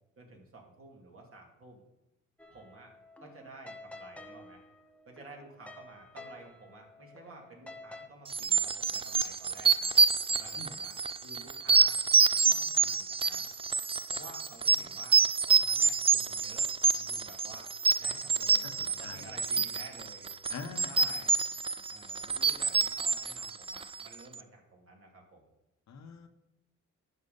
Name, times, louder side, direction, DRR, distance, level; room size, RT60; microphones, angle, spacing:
voice 1, 0.2-1.8 2.5-2.9 3.2-4.6 5.1-9.9 10.3-12.0 12.3-13.5 14.1-15.2 15.6-16.7 16.9-17.7 18.0-20.3 20.8-21.4 21.9-25.5, right 2 dB, 45° right, 0 dB, 2.6 m, -52 dB
sound 1, 2.4-8.1, left 2 dB, 5° left, 0.9 m, -50 dB
sound 2, 8.3-24.1, right 5 dB, 20° right, 0.4 m, -27 dB
voice 2, 18.8-19.3 20.5-21.1 25.9-26.3, left 5 dB, 65° left, 6 dB, 1.2 m, -44 dB
10.5 x 6.7 x 4.0 m, 0.93 s
cardioid pair, 90°, 30 cm